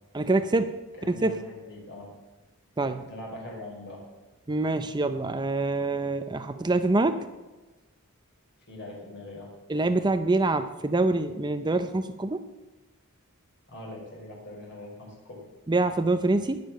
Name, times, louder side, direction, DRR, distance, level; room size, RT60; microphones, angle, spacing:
voice 1, 0.1-0.7 1.1-1.4 2.8-3.1 4.5-7.3 9.7-12.5 15.7-16.6, right 2 dB, 20° right, 10 dB, 0.5 m, -25 dB
voice 2, 1.0-2.1 3.1-4.0 8.7-9.5 13.7-15.4, left 1 dB, 55° left, -2 dB, 5.2 m, -42 dB
20.0 x 6.8 x 6.4 m, 1.2 s
head